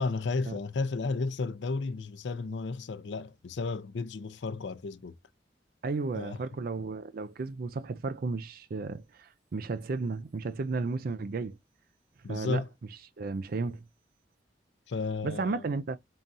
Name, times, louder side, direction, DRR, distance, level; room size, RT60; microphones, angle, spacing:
voice 1, 0.0-5.1 6.2-6.4 12.2-12.7 14.9-15.7, left 3 dB, 75° left, 0.5 m, -33 dB
voice 2, 5.8-11.6 12.3-12.6 13.2-13.9 15.2-16.0, right 3 dB, 55° right, 0.4 m, -33 dB
4.1 x 3.8 x 2.6 m
head